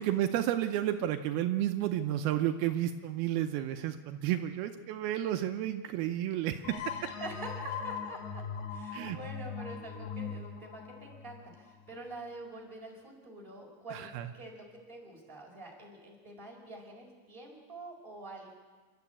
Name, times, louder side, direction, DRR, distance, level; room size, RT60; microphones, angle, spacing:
voice 1, 0.0-7.0 8.9-9.2 13.9-14.3, right 12 dB, 80° right, 7 dB, 2.7 m, -31 dB
sound 1, 6.6-12.1, left 6 dB, 90° left, 3.4 m, -40 dB
voice 2, 7.1-18.5, right 2 dB, 15° right, -1 dB, 4.6 m, -46 dB
28.5 x 12.5 x 8.5 m, 1.4 s
omnidirectional pair, 4.4 m